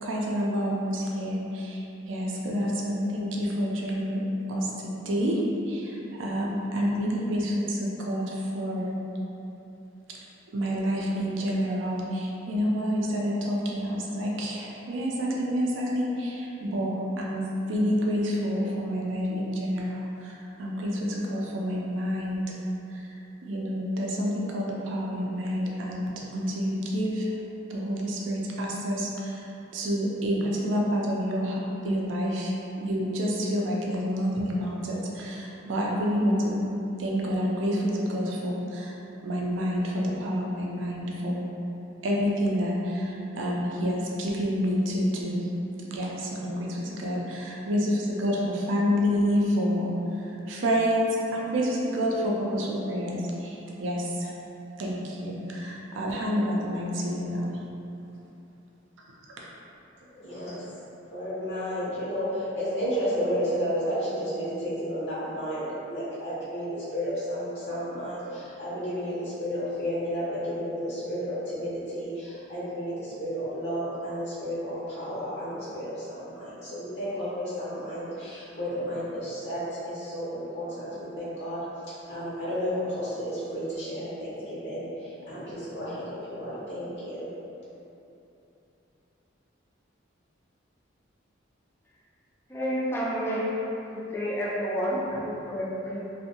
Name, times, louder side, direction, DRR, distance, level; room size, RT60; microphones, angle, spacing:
voice 1, 0.0-5.4 5.7-9.0 10.5-22.4 22.9-23.1 23.5-27.3 27.7-36.6 37.0-39.0 39.2-41.5 42.0-45.5 45.9-54.4 54.8-57.5, equal, 75° right, -3 dB, 0.4 m, -28 dB
voice 2, 60.2-60.6 61.1-87.3, equal, 60° left, -10 dB, 0.6 m, -32 dB
voice 3, 92.5-93.6 93.9-96.0, equal, 10° left, -6 dB, 0.3 m, -30 dB
2.5 x 2.1 x 2.8 m, 2.9 s
head